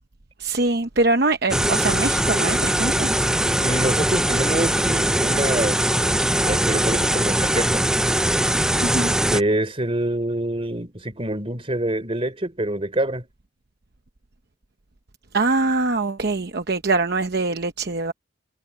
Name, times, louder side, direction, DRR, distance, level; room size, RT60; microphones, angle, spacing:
voice 1, 0.4-3.1 8.8-9.1 15.3-18.1, right 3 dB, 50° right, 0.9 m, -23 dB
sound 1, 1.5-9.4, right 1 dB, 5° right, 0.4 m, -21 dB
voice 2, 3.6-7.8 9.3-13.3, right 1 dB, 30° right, 3.5 m, -26 dB
head